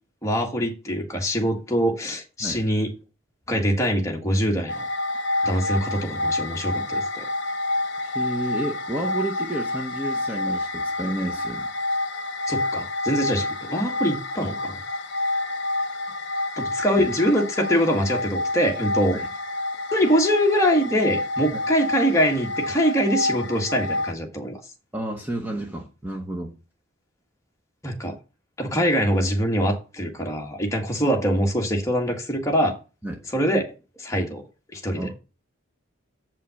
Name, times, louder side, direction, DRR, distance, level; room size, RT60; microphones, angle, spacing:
voice 1, 0.2-2.9 3.5-4.8 5.4-7.3 12.5-14.8 16.6-19.2 19.9-24.6 27.8-28.2 28.6-32.8 33.3-33.6 34.0-34.4 34.7-35.1, equal, 15° left, 1.6 m, -23 dB
sound 1, 4.7-24.1, left 2 dB, 55° left, 1.1 m, -28 dB
voice 2, 8.0-11.7 17.0-17.1 19.1-19.3 21.5-21.6 24.9-26.6 28.7-28.8 33.0-33.2 35.0-35.1, right 1 dB, 10° right, 0.9 m, -31 dB
7.6 x 5.5 x 7.0 m
head